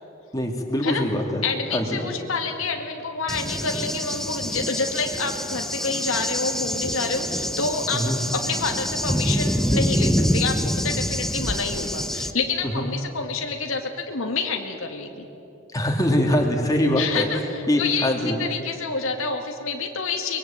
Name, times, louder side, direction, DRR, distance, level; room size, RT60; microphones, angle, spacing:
voice 1, 0.3-1.4 1.7-2.0 7.9-8.2 12.7-12.9 15.7-17.3 17.7-18.4, left 1 dB, 15° left, 1 dB, 3.0 m, -23 dB
voice 2, 1.4-8.0 8.3-15.3 17.0-18.1 18.4-20.4, left 4 dB, 75° left, 3 dB, 2.1 m, -28 dB
Cricket / Thunder, 3.3-12.3, equal, ahead, 0.9 m, -26 dB
23.5 x 22.5 x 8.9 m, 3.0 s
head